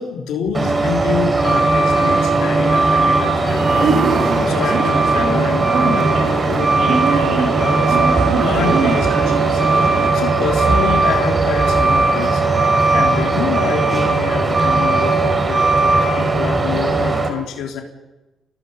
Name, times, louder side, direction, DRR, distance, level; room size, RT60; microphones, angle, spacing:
voice 1, 0.0-12.4 12.9-17.8, left 7 dB, 85° left, 1 dB, 3.3 m, -27 dB
Truck, 0.5-17.3, right 3 dB, 25° right, 4.7 m, -17 dB
sound 1, 3.4-10.1, right 4 dB, 65° right, 3.0 m, -22 dB
28.5 x 19.5 x 5.5 m, 1.0 s
cardioid pair, 90°, 0 cm